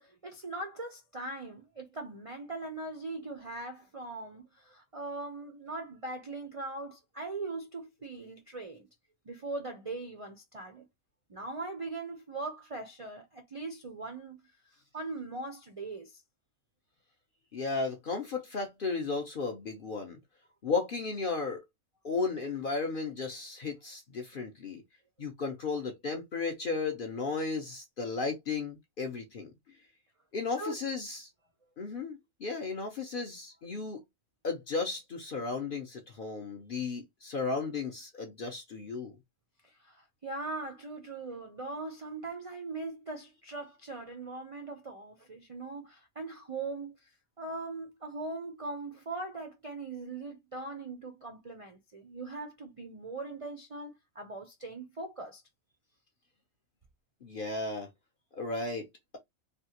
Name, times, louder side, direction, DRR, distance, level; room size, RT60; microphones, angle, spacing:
voice 1, 0.0-8.9 9.2-10.9 11.3-14.4 14.9-16.2 30.6-30.8 39.6-47.1 47.4-55.4, right 3 dB, 45° right, 0.4 m, -40 dB
voice 2, 17.5-20.2 20.6-21.6 22.0-24.8 25.2-29.5 30.3-31.3 31.8-34.0 34.4-39.2 57.2-57.9 58.3-59.2, left 4 dB, 50° left, 0.7 m, -34 dB
3.3 x 2.4 x 2.8 m
omnidirectional pair, 1.4 m